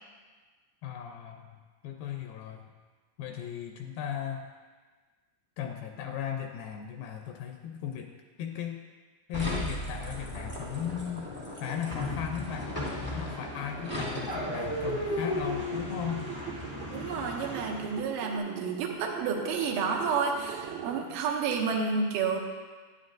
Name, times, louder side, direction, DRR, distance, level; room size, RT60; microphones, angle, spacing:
voice 1, 0.8-2.7 3.2-4.5 5.6-8.1 8.4-8.8 9.3-12.7 13.2-16.2, left 8 dB, 80° left, 3 dB, 2.4 m, -37 dB
sound 1, 9.3-18.1, left 1 dB, 5° right, 0.9 m, -35 dB
sound 2, 13.8-21.5, right 9 dB, 90° right, 2.7 m, -42 dB
voice 2, 16.9-22.4, right 5 dB, 70° right, 1 dB, 2.3 m, -30 dB
12.5 x 9.8 x 2.5 m, 1.4 s
omnidirectional pair, 4.5 m